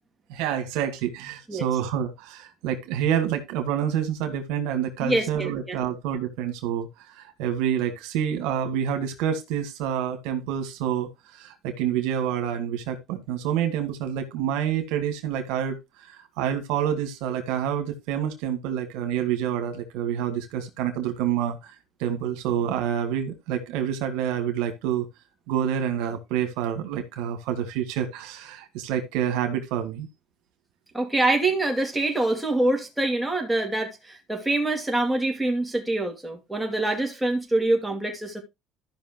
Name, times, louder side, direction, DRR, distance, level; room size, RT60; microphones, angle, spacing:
voice 1, 0.3-15.8 16.1-21.7 22.0-25.0 25.5-30.1, right 9 dB, 85° right, 1.6 m, -28 dB
voice 2, 5.0-5.8 30.9-38.4, right 2 dB, 5° right, 2.4 m, -25 dB
14.0 x 5.7 x 2.9 m
supercardioid pair, 100°, 0 cm